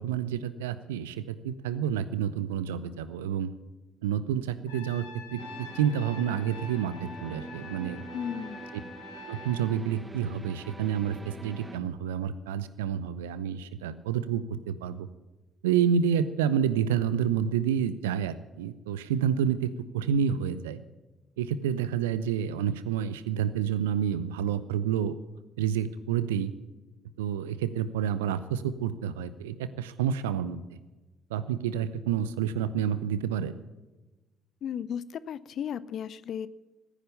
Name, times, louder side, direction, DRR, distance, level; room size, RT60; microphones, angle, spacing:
voice 1, 0.0-3.5 4.0-8.0 9.3-15.1 15.6-20.8 21.4-25.1 25.6-26.5 27.2-30.6 31.3-33.6, right 8 dB, 75° right, 15 dB, 0.7 m, -29 dB
Trumpet, 4.7-9.7, left 2 dB, 80° left, 1.9 m, -45 dB
sound 1, 5.4-11.8, right 1 dB, 15° right, 1.4 m, -45 dB
voice 2, 8.1-8.6 34.6-36.5, left 8 dB, 55° left, 18 dB, 0.5 m, -35 dB
15.0 x 10.0 x 6.9 m, 1.1 s
figure-of-eight pair, 45°, 0 cm